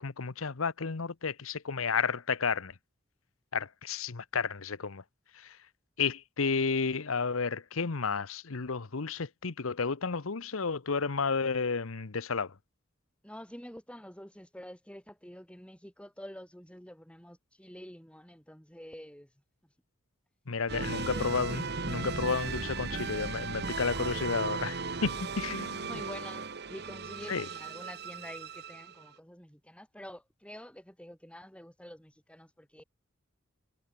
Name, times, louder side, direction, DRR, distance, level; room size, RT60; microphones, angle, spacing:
voice 1, 0.0-2.7 3.5-5.0 5.3-5.6 6.0-12.5 20.5-26.0 27.3-27.5, left 5 dB, 85° left, 0.9 m, -32 dB
voice 2, 13.2-19.3 20.9-21.3 25.8-32.8, equal, 5° left, 5.6 m, -48 dB
sound 1, 20.7-29.1, right 4 dB, 55° right, 1.4 m, -36 dB
head